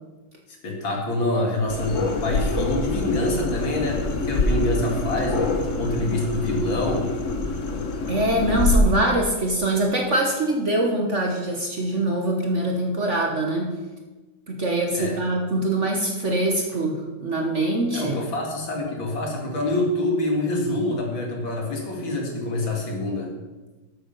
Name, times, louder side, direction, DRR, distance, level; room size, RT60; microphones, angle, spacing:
voice 1, 0.6-7.1 14.9-15.2 17.9-23.3, left 1 dB, 70° left, 0 dB, 3.1 m, -26 dB
sound 1, 1.7-8.8, left 3 dB, 45° left, 1.2 m, -26 dB
voice 2, 8.1-13.7 14.5-18.2, right 1 dB, 40° right, 1 dB, 1.4 m, -23 dB
13.0 x 8.1 x 5.6 m, 1.2 s
omnidirectional pair, 2.2 m